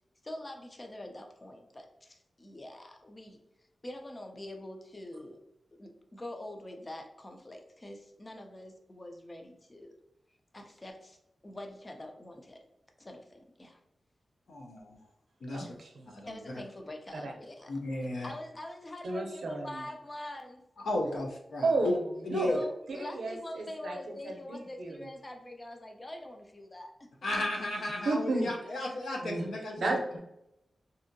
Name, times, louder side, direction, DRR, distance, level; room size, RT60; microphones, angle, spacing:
voice 1, 0.2-3.4 3.8-5.4 5.7-9.9 10.5-11.2 11.4-12.6 13.0-13.8 15.5-15.7 16.3-17.7 18.2-20.6 22.5-27.3 28.3-28.4, left 1 dB, 20° left, 3 dB, 0.4 m, -44 dB
voice 2, 14.5-15.0 15.4-15.7 16.1-16.3 17.7-18.3 20.8-21.9 22.2-22.6 27.2-30.0, left 1 dB, 80° left, 0 dB, 0.5 m, -34 dB
voice 3, 15.5-16.1 17.1-17.3 19.0-19.9 21.6-22.6 22.9-24.0 24.2-25.1 28.0-28.9 29.2-29.5 29.8-30.2, right 2 dB, 80° right, 2 dB, 0.5 m, -33 dB
2.7 x 2.5 x 2.6 m, 0.85 s
wide cardioid pair, 165°, 0 cm